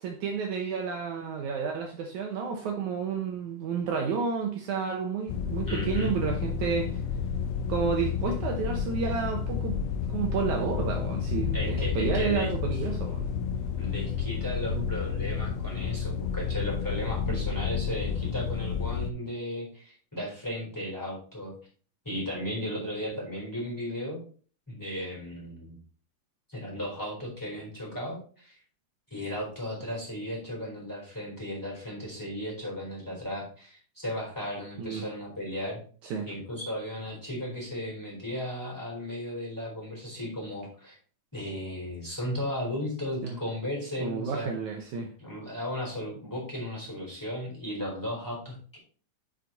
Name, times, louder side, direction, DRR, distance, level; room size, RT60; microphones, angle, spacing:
voice 1, 0.0-7.0 7.7-9.8 10.1-13.3 14.7-14.8 17.3-17.4 34.8-35.1 36.0-36.3 43.2-43.4 44.0-45.1, right 5 dB, 70° right, 2 dB, 2.1 m, -31 dB
sound 1, 5.3-19.1, left 7 dB, 85° left, 2.4 m, -31 dB
voice 2, 5.7-6.1 11.5-12.5 13.8-21.5 22.0-24.2 24.7-25.8 26.5-28.6 29.1-35.8 36.3-41.0 41.3-44.5 45.2-48.8, left 1 dB, 5° left, -3 dB, 3.6 m, -35 dB
7.6 x 6.1 x 4.1 m, 0.41 s
omnidirectional pair, 4.0 m